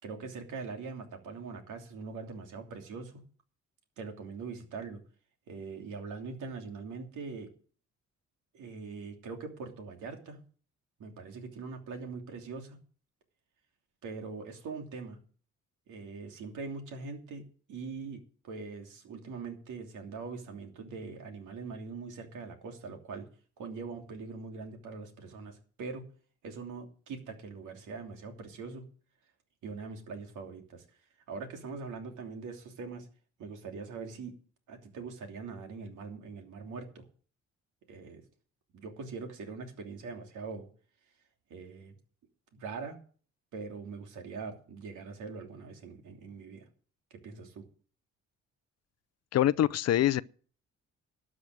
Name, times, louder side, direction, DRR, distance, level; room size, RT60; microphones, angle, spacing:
voice 1, 0.0-3.2 4.0-5.0 5.5-7.5 8.5-10.4 11.0-12.8 14.0-15.2 15.9-17.4 17.7-23.3 23.6-26.1 26.4-28.8 29.6-30.8 31.3-33.1 33.4-34.3 34.7-37.1 37.9-38.2 38.7-40.7 41.5-41.9 42.5-43.0 43.5-46.6 47.1-47.6, right 4 dB, 80° right, 3.0 m, -42 dB
voice 2, 49.3-50.2, left 12 dB, 60° left, 0.5 m, -24 dB
12.5 x 6.3 x 9.3 m
cardioid pair, 90°, 30 cm